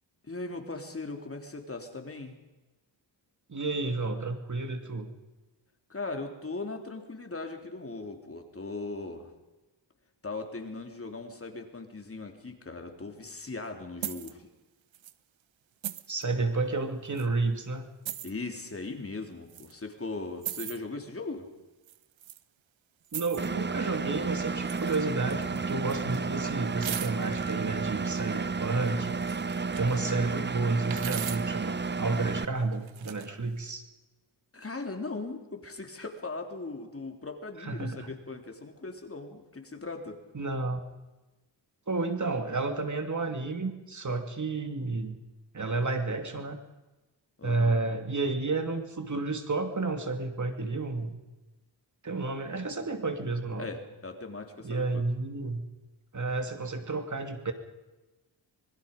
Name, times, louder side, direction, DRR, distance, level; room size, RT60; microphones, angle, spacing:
voice 1, 0.2-2.3 5.9-9.3 10.2-14.4 18.2-21.5 34.5-40.2 47.4-47.8 53.6-55.0, left 3 dB, 30° left, 4 dB, 3.4 m, -39 dB
voice 2, 3.5-5.1 16.1-17.9 23.1-29.2 29.8-33.8 37.6-38.1 40.3-40.8 41.9-45.2 45.5-46.6 47.4-51.2 52.0-53.7 54.6-55.6 56.1-57.5, right 3 dB, 40° right, 6 dB, 2.8 m, -31 dB
sound 1, 14.0-14.3 14.9-15.1 15.8-16.2 17.2-17.3 18.0-18.3 19.5-19.7 20.4-20.8 21.9-22.4 23.1-23.5 24.6-25.0 25.3-26.2 26.8-27.5 28.8-30.0 30.9-31.6 32.7-33.3, right 11 dB, 85° right, 1.1 m, -39 dB
Engine, 23.4-32.5, right 4 dB, 25° right, 0.7 m, -32 dB
25.5 x 22.0 x 5.4 m, 1.1 s
cardioid pair, 75°, 45 cm